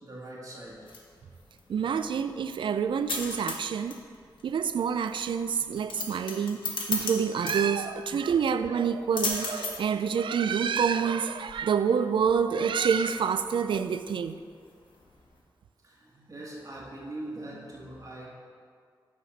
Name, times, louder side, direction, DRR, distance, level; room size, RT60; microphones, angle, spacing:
voice 1, 0.0-0.8 15.8-18.3, right 1 dB, 45° right, -5 dB, 1.9 m, -41 dB
Back gate latch, 0.6-15.4, left 3 dB, 85° left, 1.0 m, -39 dB
voice 2, 1.7-4.0 4.4-6.6 6.9-14.4, right 7 dB, 80° right, 11 dB, 0.3 m, -27 dB
8.5 x 4.1 x 5.7 m, 2.1 s
cardioid pair, 75°, 8 cm